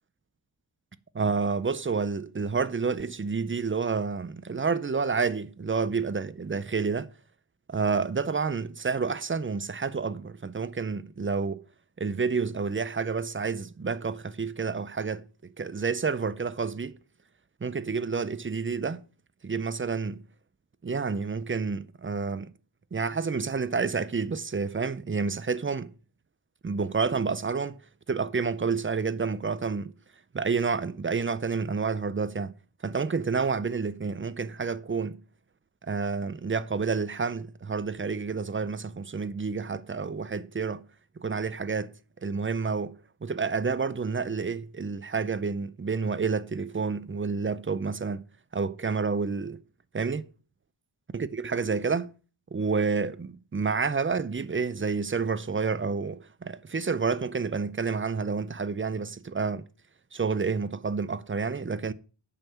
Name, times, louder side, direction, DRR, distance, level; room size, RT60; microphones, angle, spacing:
voice 1, 1.1-7.1 7.7-11.6 12.0-17.0 17.6-19.0 19.4-20.2 20.8-22.5 22.9-25.9 26.6-27.8 28.1-29.9 30.3-32.5 32.8-35.2 35.8-40.8 41.2-41.9 42.2-43.0 43.2-48.2 48.5-49.6 49.9-50.3 51.1-52.1 52.5-59.6 60.1-61.9, right 5 dB, 25° right, 0.6 m, -29 dB
8.7 x 5.5 x 7.1 m
wide cardioid pair, 85°, 48 cm